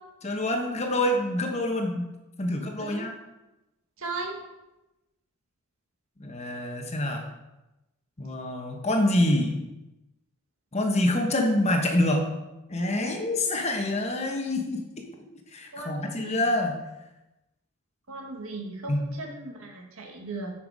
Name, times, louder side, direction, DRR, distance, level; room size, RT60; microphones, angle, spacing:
voice 1, 0.2-2.1 2.4-3.1 6.2-7.2 8.2-9.6 10.7-12.3 12.7-15.0 15.5-16.8 18.9-19.1, left 1 dB, 30° left, 3 dB, 1.1 m, -26 dB
voice 2, 4.0-4.4 15.7-16.4 18.1-20.5, right 3 dB, 75° right, 2 dB, 1.5 m, -37 dB
9.3 x 5.9 x 4.8 m, 0.98 s
head